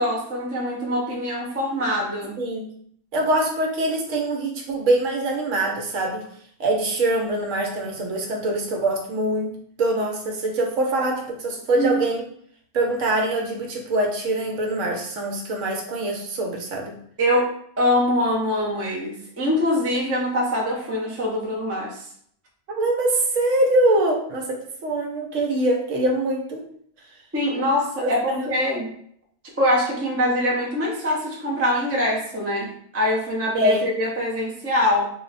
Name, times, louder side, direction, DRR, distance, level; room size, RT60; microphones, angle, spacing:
voice 1, 0.0-2.4 11.7-12.0 17.2-17.5 17.8-22.0 27.3-28.9 29.6-35.1, left 1 dB, 20° right, -3 dB, 0.4 m, -23 dB
voice 2, 2.4-2.7 3.1-6.2 6.6-9.5 9.8-12.2 12.7-16.9 22.7-26.6 28.3-28.5 33.5-33.8, right 1 dB, 75° right, 1 dB, 1.0 m, -23 dB
2.5 x 2.1 x 3.9 m, 0.64 s
omnidirectional pair, 1.3 m